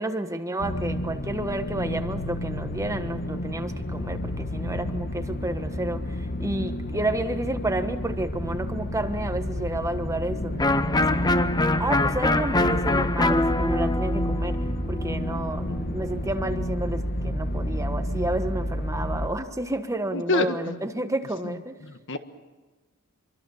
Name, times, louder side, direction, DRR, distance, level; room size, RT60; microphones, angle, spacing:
voice 1, 0.0-6.0 6.4-11.3 11.8-14.6 14.9-21.7, right 1 dB, 15° right, 7 dB, 1.3 m, -30 dB
sound 1, 0.6-19.3, equal, 45° left, 1.4 m, -30 dB
Electric guitar, 10.6-16.2, left 2 dB, 20° left, 0.8 m, -25 dB
voice 2, 20.1-20.8 21.4-21.5 21.8-22.2, left 2 dB, 60° left, 8 dB, 1.6 m, -27 dB
25.5 x 24.0 x 7.2 m, 1.2 s
head